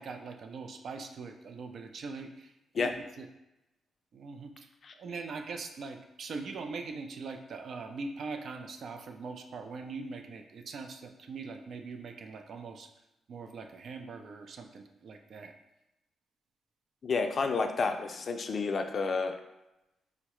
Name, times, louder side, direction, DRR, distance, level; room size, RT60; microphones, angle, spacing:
voice 1, 0.0-3.3 4.1-12.9 13.3-15.5, right 4 dB, 65° right, 5 dB, 0.3 m, -42 dB
voice 2, 17.0-19.3, left 4 dB, 55° left, 6 dB, 0.3 m, -30 dB
3.7 x 2.1 x 2.9 m, 0.93 s
cardioid pair, 65°, 0 cm